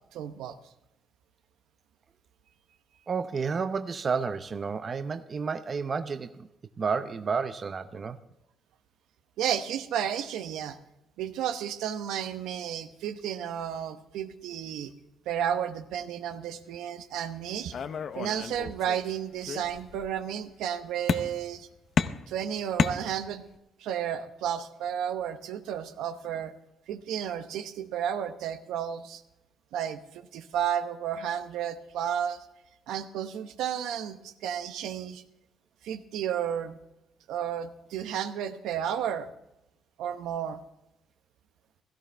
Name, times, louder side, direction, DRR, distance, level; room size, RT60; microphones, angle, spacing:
voice 1, 0.1-0.6 9.4-10.8 11.2-14.9 15.3-17.8 18.1-21.7 22.3-23.5 23.8-26.5 26.9-29.2 29.7-32.4 32.9-35.2 35.8-36.8 37.3-39.3 40.0-40.6, right 9 dB, 90° right, 0.9 m, -32 dB
voice 2, 3.1-6.5 6.8-8.2, right 5 dB, 40° right, 0.7 m, -31 dB
sound 1, 17.7-19.1 19.4-20.1 21.1-21.6 22.0-23.6, left 6 dB, 55° left, 0.7 m, -31 dB
16.5 x 13.5 x 3.4 m
cardioid pair, 90°, 0 cm